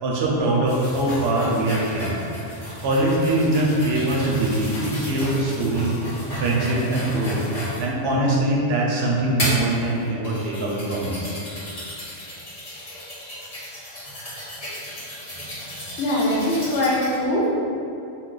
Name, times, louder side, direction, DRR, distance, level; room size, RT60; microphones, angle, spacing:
voice 1, 0.0-2.1 2.8-6.0 6.4-7.4 7.8-11.4, right 1 dB, 70° right, -3 dB, 0.8 m, -22 dB
sound 1, 0.7-7.9 8.4-8.5 9.4-17.1, equal, 35° left, 0.8 m, -33 dB
voice 2, 16.0-17.7, left 1 dB, 90° left, -4 dB, 0.9 m, -22 dB
2.3 x 2.3 x 3.7 m, 2.8 s
omnidirectional pair, 1.1 m